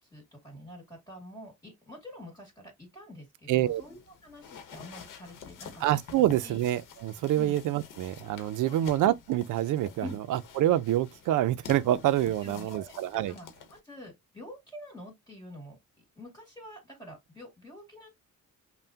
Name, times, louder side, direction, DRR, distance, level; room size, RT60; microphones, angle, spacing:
voice 1, 0.0-5.8 6.4-6.6 7.4-7.6 8.6-8.9 10.0-10.2 12.4-13.0 13.3-15.8 16.2-18.1, left 1 dB, 15° left, 2.1 m, -46 dB
voice 2, 3.5-3.8 5.8-13.3, right 13 dB, 75° right, 0.5 m, -27 dB
sound 1, 3.6-13.8, left 6 dB, 85° left, 0.9 m, -49 dB
5.5 x 2.2 x 2.7 m
cardioid pair, 120°, 31 cm